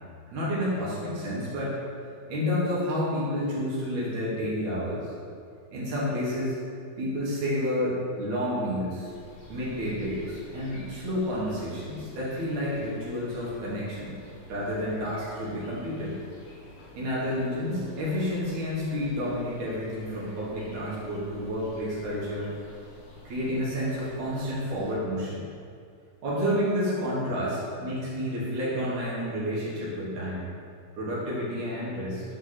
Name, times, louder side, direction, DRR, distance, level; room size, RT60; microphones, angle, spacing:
voice 1, 0.3-1.7 2.3-5.1 5.7-6.6 7.0-9.1 9.5-14.2 14.5-16.2 16.9-22.5 23.2-25.4 26.2-30.5 31.0-32.2, equal, 75° right, -7 dB, 3.1 m, -30 dB
sound 1, 9.0-25.0, left 2 dB, 65° left, 2.3 m, -50 dB
9.6 x 4.1 x 4.1 m, 2.3 s
omnidirectional pair, 3.4 m